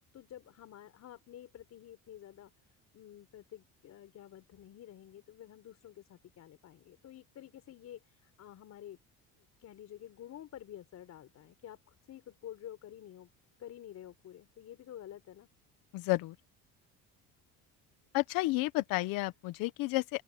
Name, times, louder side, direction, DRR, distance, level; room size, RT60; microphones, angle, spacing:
voice 1, 0.0-9.0 9.3-13.3 13.6-15.5, left 11 dB, 50° left, 4.2 m, -50 dB
voice 2, 15.9-16.3 18.1-20.2, left 20 dB, 80° left, 1.4 m, -31 dB
open air
cardioid pair, 125°, 33 cm